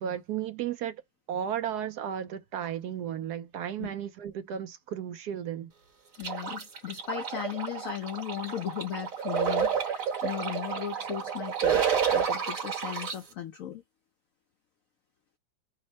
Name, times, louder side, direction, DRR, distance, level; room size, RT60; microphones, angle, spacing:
voice 1, 0.0-1.0 1.3-5.7, right 9 dB, 70° right, 1.1 m, -34 dB
voice 2, 6.2-13.8, left 10 dB, 90° left, 0.7 m, -37 dB
sound 1, 6.2-13.1, right 7 dB, 50° right, 1.6 m, -30 dB
5.2 x 2.1 x 4.0 m
omnidirectional pair, 2.0 m